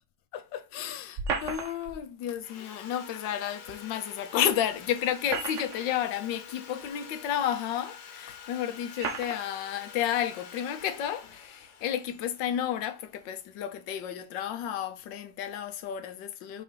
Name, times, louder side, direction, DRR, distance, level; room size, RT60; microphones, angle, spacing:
voice 1, 0.3-16.6, left 10 dB, 90° left, 1.4 m, -32 dB
sound 1, 1.2-2.0 3.7-3.8 5.0-6.0 6.8-6.9 7.9-8.0 9.0-9.5, right 5 dB, 50° right, 1.1 m, -34 dB
Sawing, 2.4-13.5, left 6 dB, 65° left, 1.5 m, -47 dB
5.8 x 3.2 x 5.4 m
omnidirectional pair, 1.9 m